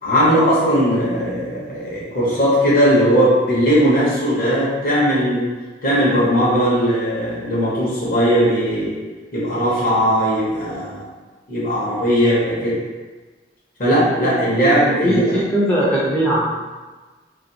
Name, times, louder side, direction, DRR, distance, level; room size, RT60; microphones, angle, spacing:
voice 1, 0.0-5.5 5.8-9.0 9.3-11.1 11.5-12.8 13.8-15.2, equal, 50° left, -7 dB, 0.9 m, -18 dB
voice 2, 15.0-16.5, equal, 10° left, -9 dB, 0.3 m, -19 dB
2.5 x 2.3 x 2.7 m, 1.3 s
head